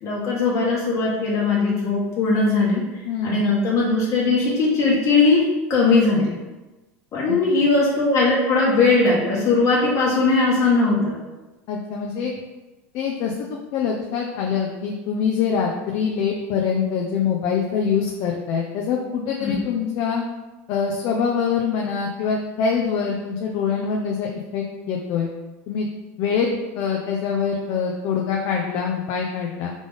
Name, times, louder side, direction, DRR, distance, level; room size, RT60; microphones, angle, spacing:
voice 1, 0.0-5.4 5.7-6.3 7.1-11.1 19.4-19.6, left 3 dB, 40° left, -6 dB, 1.2 m, -19 dB
voice 2, 3.1-3.4 7.3-7.4 11.7-12.3 12.9-20.2 20.7-25.3 25.7-25.9 26.2-26.5 26.8-29.7, left 6 dB, 55° left, 0 dB, 0.6 m, -24 dB
3.7 x 3.4 x 3.6 m, 1.1 s
supercardioid pair, 105°, 8 cm